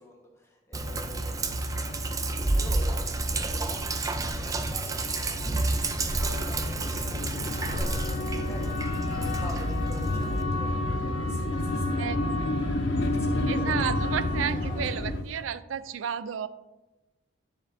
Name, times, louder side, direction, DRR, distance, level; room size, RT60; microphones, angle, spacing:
voice 1, 0.0-2.3 2.5-5.7 6.1-13.9 14.3-14.8, left 1 dB, 15° left, -1 dB, 1.3 m, -46 dB
Sink (filling or washing), 0.7-10.4, right 2 dB, 20° right, 0.4 m, -30 dB
sound 1, 0.8-15.2, left 2 dB, 60° left, 0.6 m, -31 dB
sound 2, 1.2-15.1, left 2 dB, 85° left, 1.8 m, -39 dB
voice 2, 13.5-16.5, right 8 dB, 85° right, 15 dB, 0.4 m, -32 dB
10.5 x 6.7 x 2.7 m, 1.1 s
head